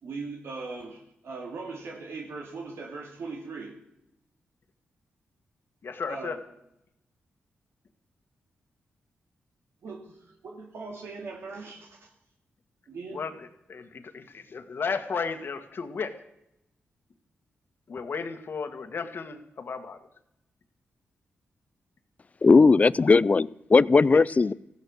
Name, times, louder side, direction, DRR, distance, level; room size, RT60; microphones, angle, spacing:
voice 1, 0.0-3.8 5.9-6.4 9.8-10.2 10.4-12.1 12.9-13.2, right 3 dB, 75° right, 2.5 m, -39 dB
voice 2, 5.8-6.4 13.1-16.1 17.9-20.0 23.0-23.1 24.1-24.2, left 5 dB, 55° left, 1.7 m, -34 dB
voice 3, 22.4-24.5, left 4 dB, 35° left, 0.5 m, -18 dB
15.5 x 13.0 x 6.4 m
cardioid pair, 75°, 4 cm